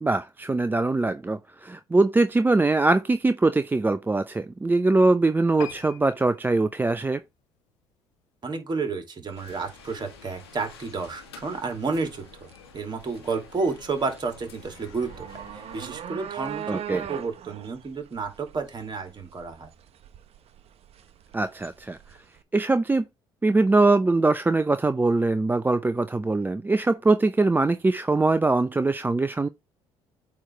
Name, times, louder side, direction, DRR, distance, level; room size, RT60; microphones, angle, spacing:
voice 1, 0.0-7.2 16.7-17.1 21.3-22.0 22.5-23.1 23.4-29.5, right 3 dB, 15° right, 0.5 m, -22 dB
sound 1, 5.6-8.3 8.8-9.0 9.5-9.6 9.9-10.0 10.2-10.3, left 13 dB, 70° left, 0.8 m, -45 dB
voice 2, 8.4-12.3 12.7-19.7, right 4 dB, 35° right, 2.6 m, -31 dB
sound 2, 9.3-22.4, right 10 dB, 50° right, 0.9 m, -42 dB
sound 3, 9.4-15.9, left 7 dB, 90° left, 1.3 m, -49 dB
8.6 x 3.2 x 5.1 m
hypercardioid pair, 55°, 13 cm